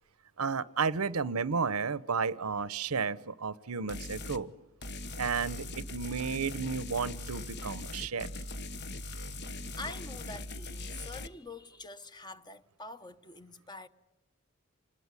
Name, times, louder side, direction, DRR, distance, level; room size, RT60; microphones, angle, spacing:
voice 1, 0.4-4.5 5.2-8.3, right 5 dB, 85° right, 0.9 m, -32 dB
sound 1, 3.9-4.4 4.8-11.3, left 2 dB, 50° left, 1.2 m, -40 dB
voice 2, 9.8-13.9, left 2 dB, 20° left, 1.0 m, -45 dB
27.5 x 20.5 x 9.7 m
head